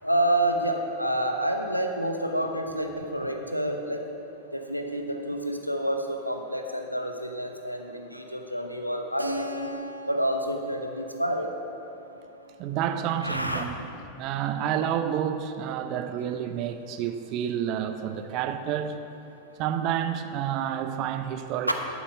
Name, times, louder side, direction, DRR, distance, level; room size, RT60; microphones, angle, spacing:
voice 1, 0.0-4.0 4.5-9.7 10.1-11.5 13.2-13.9 21.7-21.8, right 1 dB, 90° left, 4 dB, 0.9 m, -28 dB
Keyboard (musical), 9.2-13.7, equal, 85° right, 0.6 m, -39 dB
voice 2, 12.6-13.7 14.2-19.0 19.6-21.7, right 9 dB, 40° right, 9 dB, 0.7 m, -29 dB
12.0 x 7.2 x 5.3 m, 2.7 s
figure-of-eight pair, 90°, 0 cm